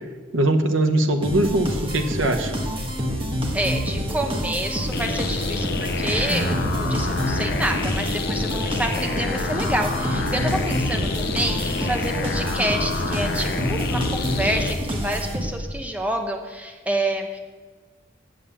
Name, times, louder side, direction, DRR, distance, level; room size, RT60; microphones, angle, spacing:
voice 1, 0.3-2.5, right 1 dB, 85° right, 6 dB, 1.0 m, -21 dB
sound 1, 1.2-15.8, equal, 25° right, 1.4 m, -27 dB
voice 2, 3.5-17.4, right 1 dB, 5° right, 3 dB, 0.9 m, -28 dB
sound 2, 4.9-14.7, left 3 dB, 55° left, 0.7 m, -28 dB
7.9 x 7.2 x 8.4 m, 1.4 s
head